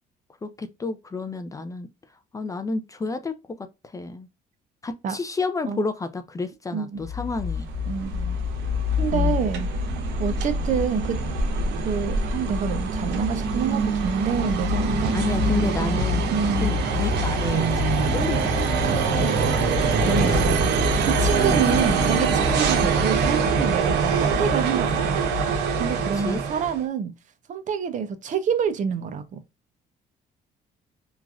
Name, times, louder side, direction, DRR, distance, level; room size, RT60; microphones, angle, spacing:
voice 1, 0.4-1.9 2.3-4.3 4.8-7.7 9.1-9.4 15.1-16.3 16.6-19.3 20.0-20.5 21.5-21.7 22.8-22.9 26.1-26.4, left 3 dB, 20° left, 0.4 m, -31 dB
voice 2, 6.7-7.0 7.9-8.4 9.0-9.7 10.2-11.2 11.8-15.1 16.3-16.8 18.8-25.2 25.8-27.1 27.5-29.4, right 7 dB, 50° right, 0.6 m, -27 dB
sound 1, 7.0-26.8, right 3 dB, 85° right, 0.8 m, -23 dB
3.1 x 2.5 x 2.3 m
cardioid pair, 110°, 17 cm